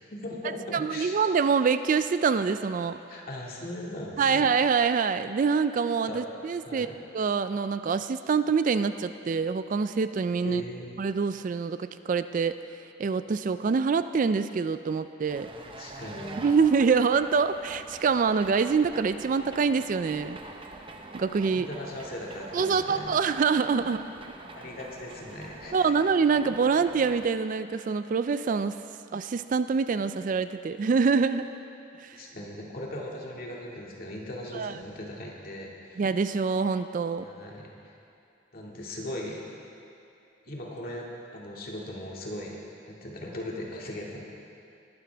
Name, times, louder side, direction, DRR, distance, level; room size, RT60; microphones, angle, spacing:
voice 1, 0.1-1.2 3.1-4.5 6.0-6.2 6.6-7.0 10.4-10.9 15.8-16.4 21.5-23.1 24.5-25.9 32.1-36.0 37.2-37.9 38.5-39.4 40.4-41.1 41.3-42.6 42.9-44.2, left 1 dB, 50° left, -3 dB, 2.1 m, -38 dB
voice 2, 0.7-3.0 4.2-6.9 7.1-10.6 11.0-12.6 13.0-15.5 16.4-20.4 21.1-21.7 22.5-24.0 25.7-28.8 29.1-31.5 32.0-32.2 34.5-34.7 36.0-37.2, right 5 dB, 40° right, 11 dB, 0.3 m, -25 dB
sound 1, 15.2-27.3, right 2 dB, 25° right, 0.7 m, -45 dB
20.0 x 12.5 x 3.4 m, 2.6 s
head